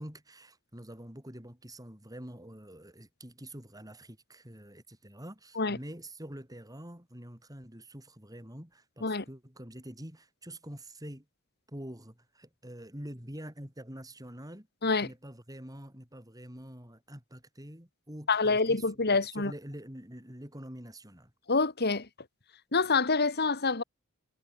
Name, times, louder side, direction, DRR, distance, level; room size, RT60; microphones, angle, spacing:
voice 1, 0.0-11.3 11.7-14.7 15.0-21.3, right 1 dB, 15° right, 6.4 m, -46 dB
voice 2, 18.3-19.5 21.5-22.1 22.7-23.8, left 4 dB, 50° left, 2.2 m, -26 dB
head